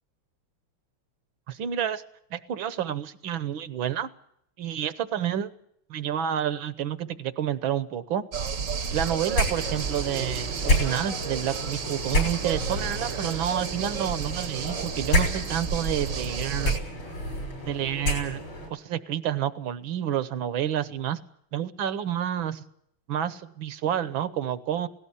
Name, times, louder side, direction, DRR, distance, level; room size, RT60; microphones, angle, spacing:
voice 1, 1.5-2.0 2.3-4.1 4.6-5.5 5.9-8.3 8.9-16.8 17.7-18.4 18.7-21.2 21.5-22.7 23.1-24.9, right 10 dB, 65° right, 14 dB, 1.7 m, -29 dB
sound 1, 8.3-16.8, right 6 dB, 45° right, 1.2 m, -32 dB
sound 2, 9.3-18.7, equal, 65° left, 6.8 m, -30 dB
17.5 x 17.5 x 9.9 m, 0.71 s
omnidirectional pair, 2.4 m